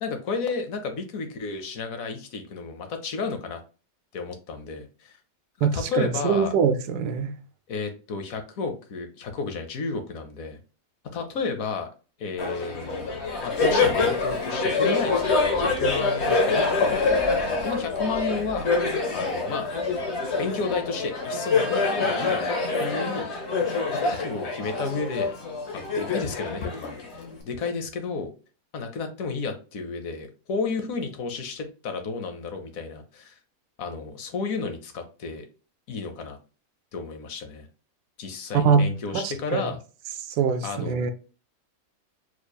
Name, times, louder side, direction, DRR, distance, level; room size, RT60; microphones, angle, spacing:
voice 1, 0.0-3.6 4.1-5.2 5.6-6.5 7.7-10.6 11.1-11.9 12.2-18.7 19.1-19.7 20.4-22.5 22.8-23.3 23.9-25.4 25.7-28.3 28.7-33.3 33.8-35.5 35.9-36.4 36.9-37.7 38.2-39.8 40.6-41.1, left 4 dB, 65° left, 1.1 m, -32 dB
voice 2, 5.6-7.3 38.5-39.7 40.3-41.1, right 6 dB, 80° right, 1.1 m, -23 dB
Laughter, 12.4-27.4, left 3 dB, 50° left, 1.2 m, -25 dB
4.5 x 3.0 x 2.2 m
omnidirectional pair, 1.7 m